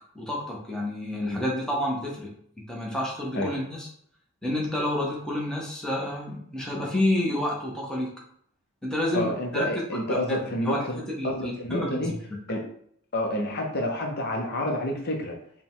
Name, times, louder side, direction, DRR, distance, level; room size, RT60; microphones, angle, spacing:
voice 1, 0.1-2.3 2.6-3.9 4.4-8.1 8.8-9.6 10.1-10.9 11.2-12.2, left 1 dB, 5° left, -3 dB, 0.8 m, -29 dB
voice 2, 9.1-12.1 12.5-12.6 13.1-15.4, left 1 dB, 50° left, 2 dB, 0.7 m, -29 dB
4.8 x 2.2 x 3.5 m, 0.65 s
head